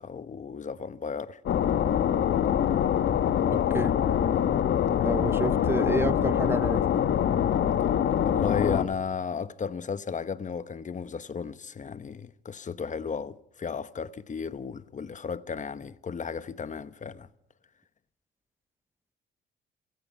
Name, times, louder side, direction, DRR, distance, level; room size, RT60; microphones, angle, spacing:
voice 1, 0.0-1.4 8.2-17.3, left 6 dB, 40° left, 1.1 m, -34 dB
sound 1, 1.5-8.8, left 9 dB, 70° left, 1.6 m, -24 dB
voice 2, 3.5-3.9 5.0-6.8, right 2 dB, 10° right, 0.9 m, -30 dB
28.5 x 17.5 x 5.5 m
cardioid pair, 90°, 20 cm